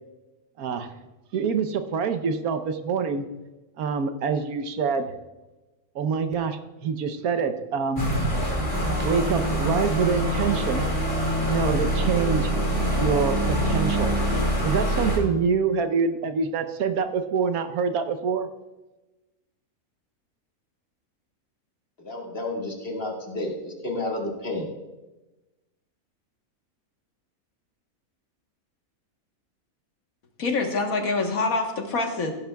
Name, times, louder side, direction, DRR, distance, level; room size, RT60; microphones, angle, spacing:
voice 1, 0.6-0.9 1.3-3.3 3.8-5.1 5.9-8.1 9.0-10.9 11.5-12.5 13.0-14.1 14.6-18.5, right 5 dB, 80° right, 8 dB, 1.3 m, -25 dB
sound 1, 8.0-15.2, right 1 dB, 15° left, 2.4 m, -25 dB
voice 2, 22.0-24.7, left 2 dB, 40° left, 0 dB, 1.9 m, -31 dB
voice 3, 30.4-32.3, left 3 dB, 70° left, 3 dB, 1.7 m, -25 dB
16.0 x 11.0 x 2.3 m, 1.1 s
omnidirectional pair, 1.5 m